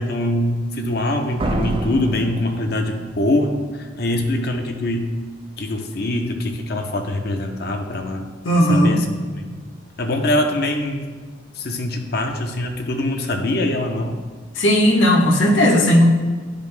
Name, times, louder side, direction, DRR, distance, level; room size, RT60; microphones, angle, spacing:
voice 1, 0.0-5.1 5.6-8.3 8.7-9.0 9.3-9.5 10.0-11.0 11.6-14.2 15.5-15.7, left 1 dB, 55° left, 4 dB, 0.8 m, -23 dB
Slam, 1.4-3.3, right 1 dB, 30° right, 0.4 m, -26 dB
voice 2, 8.4-9.0 14.6-16.1, equal, 85° left, -3 dB, 1.1 m, -15 dB
12.0 x 5.2 x 2.2 m, 1.5 s
head